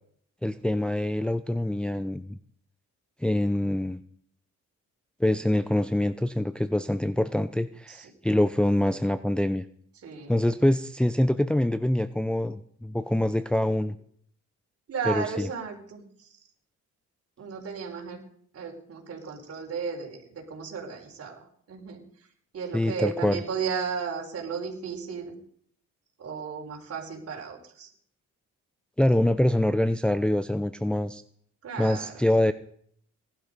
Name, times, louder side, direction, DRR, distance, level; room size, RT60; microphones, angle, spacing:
voice 1, 0.4-2.4 3.2-4.0 5.2-9.6 10.3-14.0 15.1-15.5 22.7-23.4 29.0-31.2 31.8-32.5, left 1 dB, 5° left, 11 dB, 0.7 m, -25 dB
voice 2, 10.0-10.3 14.9-16.4 17.4-18.2 18.5-22.3 22.5-25.3 26.2-27.9 31.6-32.2, right 6 dB, 50° right, 0 dB, 4.6 m, -35 dB
18.5 x 12.0 x 5.3 m, 0.62 s
cardioid pair, 90°, 30 cm